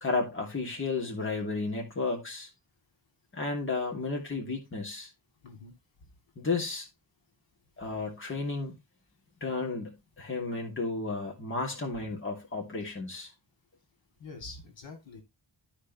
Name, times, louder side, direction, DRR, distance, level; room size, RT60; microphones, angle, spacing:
voice 1, 0.0-2.5 3.3-5.1 6.4-6.9 7.8-8.7 9.4-13.3, left 3 dB, 30° left, 2.6 m, -33 dB
voice 2, 5.4-5.7 6.0-6.1 7.8-8.0 14.2-15.2, left 3 dB, 80° left, 2.8 m, -46 dB
13.0 x 5.0 x 3.1 m
wide cardioid pair, 145°, 43 cm